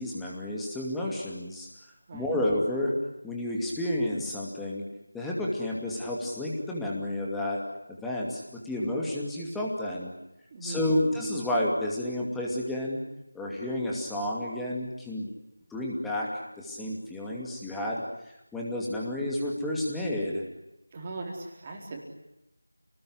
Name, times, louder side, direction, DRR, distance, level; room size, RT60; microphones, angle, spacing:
voice 1, 0.0-1.7 2.1-2.9 3.2-4.8 5.1-7.6 7.9-10.1 10.6-13.0 13.3-15.3 15.7-20.4, left 1 dB, ahead, -3 dB, 2.5 m, -31 dB
voice 2, 10.5-11.1 20.9-22.0, right 2 dB, 20° right, 1 dB, 4.4 m, -38 dB
29.5 x 20.0 x 10.0 m, 0.89 s
figure-of-eight pair, 175°, 0 cm